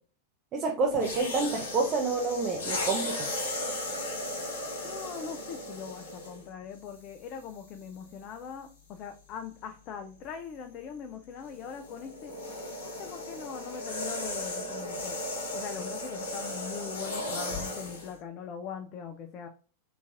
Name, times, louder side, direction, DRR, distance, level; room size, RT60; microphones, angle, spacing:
voice 1, 0.5-3.3, right 4 dB, 30° right, 1 dB, 0.5 m, -28 dB
sound 1, 0.9-6.5 7.3-7.5 11.4-18.1, left 1 dB, 60° left, 1.1 m, -36 dB
voice 2, 4.7-12.5 13.0-15.2 15.5-19.5, left 7 dB, 35° left, 6 dB, 0.4 m, -41 dB
3.9 x 2.5 x 3.6 m, 0.39 s
figure-of-eight pair, 90°, 0 cm